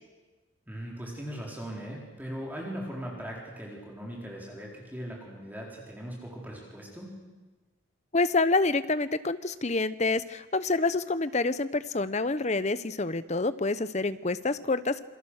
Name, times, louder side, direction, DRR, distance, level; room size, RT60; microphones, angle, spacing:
voice 1, 0.7-7.1, equal, 10° right, -3 dB, 4.4 m, -39 dB
voice 2, 8.1-15.0, left 3 dB, 35° left, 14 dB, 0.8 m, -27 dB
28.0 x 23.5 x 6.5 m, 1.2 s
head